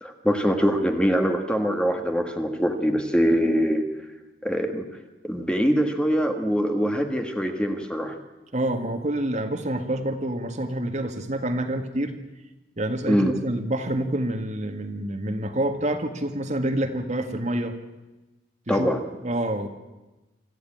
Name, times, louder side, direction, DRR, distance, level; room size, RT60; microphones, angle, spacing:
voice 1, 0.0-3.8 4.4-4.9 5.2-8.2 13.1-13.3 18.7-19.0, equal, 5° left, 5 dB, 1.7 m, -23 dB
voice 2, 8.5-12.1 12.8-17.7 18.7-18.9 19.2-19.7, right 1 dB, 40° right, 6 dB, 1.9 m, -27 dB
25.5 x 14.5 x 8.8 m, 1.1 s
head